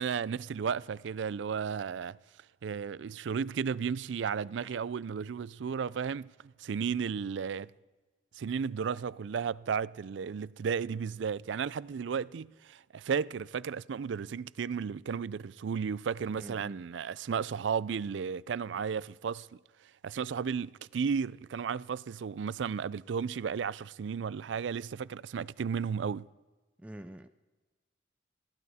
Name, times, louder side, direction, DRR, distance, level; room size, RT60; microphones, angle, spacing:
voice 1, 0.0-2.2 2.6-7.7 8.3-19.5 20.0-26.3, right 6 dB, 75° right, 0.4 m, -34 dB
voice 2, 16.4-16.8 26.8-27.3, right 1 dB, 5° right, 0.4 m, -46 dB
21.5 x 15.0 x 4.2 m
head